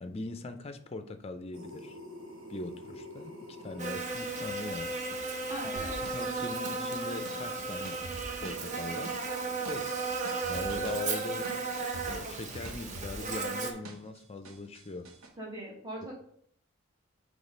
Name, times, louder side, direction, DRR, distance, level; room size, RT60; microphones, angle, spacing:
voice 1, 0.0-2.0 2.5-5.4 6.1-8.1 8.4-9.1 9.7-9.9 10.5-11.6 12.1-15.1, left 3 dB, 30° left, 8 dB, 0.5 m, -40 dB
sound 1, 1.5-3.9, equal, 60° right, 1.3 m, -46 dB
Buzz, 3.8-13.7, right 3 dB, 35° right, 0.7 m, -35 dB
voice 2, 5.5-6.0 15.4-16.2, right 1 dB, 20° right, -5 dB, 1.6 m, -40 dB
sound 2, 5.8-14.2 14.4-15.3, right 1 dB, 75° right, 1.0 m, -45 dB
6.1 x 3.2 x 5.2 m, 0.64 s
head